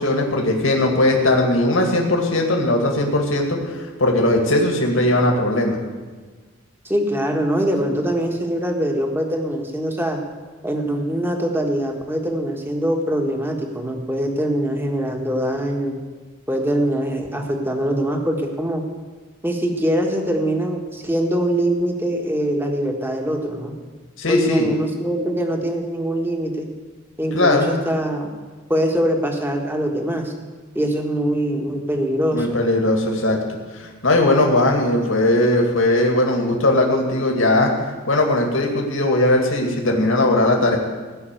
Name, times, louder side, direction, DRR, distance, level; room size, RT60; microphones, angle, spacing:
voice 1, 0.0-5.8 24.2-24.7 27.3-27.7 32.3-33.4 33.7-37.7 38.1-40.8, left 1 dB, 70° left, 1 dB, 2.2 m, -19 dB
voice 2, 6.8-10.2 10.6-16.0 16.5-18.8 19.4-23.7 24.3-26.7 27.2-28.3 28.7-30.5 30.7-32.5, right 1 dB, 10° right, 2 dB, 1.5 m, -23 dB
17.0 x 5.9 x 9.2 m, 1.4 s
head